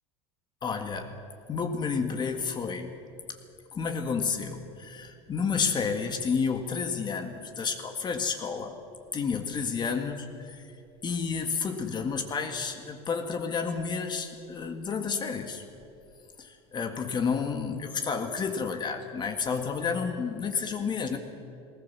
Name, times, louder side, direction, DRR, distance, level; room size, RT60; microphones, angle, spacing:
voice 1, 0.6-1.1 1.5-2.9 3.3-3.4 3.7-8.8 9.1-10.6 11.0-15.6 16.4-21.2, left 5 dB, 30° left, 6 dB, 1.8 m, -30 dB
19.5 x 19.0 x 7.3 m, 2.6 s
supercardioid pair, 115°, 15 cm